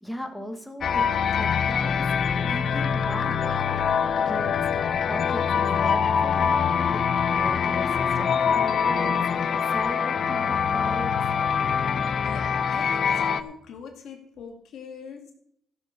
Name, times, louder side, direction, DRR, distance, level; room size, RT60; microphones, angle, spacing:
voice 1, 0.0-3.4 3.7-3.8 4.3-11.2, equal, ahead, 4 dB, 2.1 m, -38 dB
sound 1, 0.8-13.4, left 7 dB, 55° left, 0.7 m, -24 dB
voice 2, 11.9-15.3, left 6 dB, 75° left, 4 dB, 2.3 m, -42 dB
14.0 x 6.8 x 6.7 m, 0.70 s
cardioid pair, 90°, 0 cm